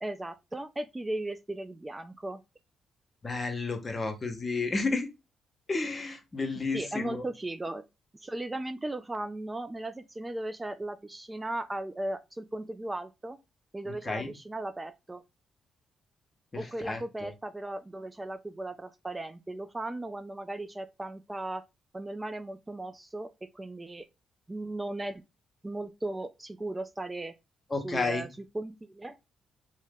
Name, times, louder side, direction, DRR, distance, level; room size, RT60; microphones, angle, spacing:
voice 1, 0.0-2.4 6.7-7.8 8.1-13.4 13.7-15.2 16.6-21.6 21.9-24.1 24.5-25.2 25.6-27.3 27.8-28.3 28.5-29.2, right 2 dB, 20° right, 0.3 m, -37 dB
voice 2, 3.2-5.1 5.7-7.2 13.9-14.3 16.5-17.3 27.7-28.3, left 3 dB, 35° left, 0.8 m, -32 dB
2.7 x 2.1 x 3.4 m
supercardioid pair, 55°, 0 cm